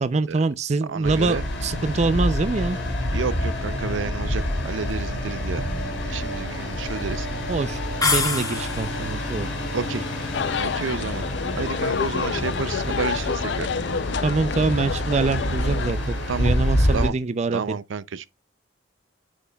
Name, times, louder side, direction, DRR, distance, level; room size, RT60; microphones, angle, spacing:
voice 1, 0.0-2.8 7.5-9.5 14.2-17.8, right 3 dB, 35° right, 0.4 m, -25 dB
voice 2, 0.9-1.4 3.1-5.6 6.0-7.3 9.7-10.1 10.6-11.3 11.6-13.7 16.3-16.5 16.9-17.1 17.5-18.3, right 5 dB, 90° right, 0.5 m, -30 dB
sound 1, 1.0-17.1, left 1 dB, 80° left, 3.5 m, -27 dB
sound 2, 8.0-9.1, left 4 dB, 20° left, 1.4 m, -24 dB
sound 3, 10.3-15.9, left 6 dB, 65° left, 0.4 m, -28 dB
10.0 x 5.5 x 2.3 m
head